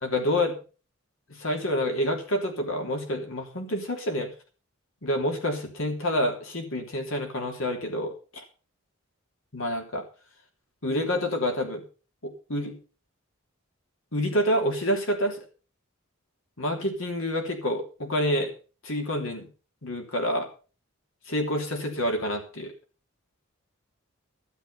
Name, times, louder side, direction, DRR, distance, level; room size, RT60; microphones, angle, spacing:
voice 1, 0.0-0.5 1.3-4.3 5.0-8.4 9.5-10.0 10.8-11.8 12.2-12.7 14.1-15.4 16.6-18.5 18.8-19.5 19.8-20.5 21.2-22.7, left 1 dB, 65° left, 3 dB, 3.2 m, -28 dB
13.0 x 11.0 x 5.5 m, 0.36 s
head